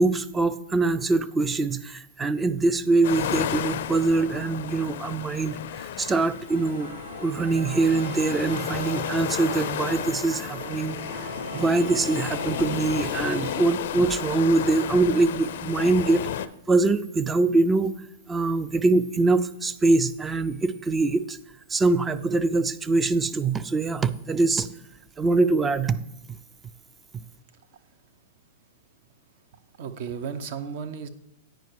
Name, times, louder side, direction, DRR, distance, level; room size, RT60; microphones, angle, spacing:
voice 1, 0.0-6.9 7.2-11.0 11.5-16.3 16.7-17.9 18.3-21.4 21.7-24.7 25.2-26.0 27.1-27.2, right 3 dB, 15° right, 13 dB, 0.4 m, -23 dB
sound 1, 3.0-16.5, left 10 dB, 65° left, 0.4 m, -33 dB
sound 2, 6.5-13.6, left 1 dB, 80° right, 2.8 m, -37 dB
voice 2, 29.8-31.1, right 6 dB, 55° right, 10 dB, 0.7 m, -35 dB
9.1 x 5.2 x 4.6 m, 0.83 s
hypercardioid pair, 120°, 0 cm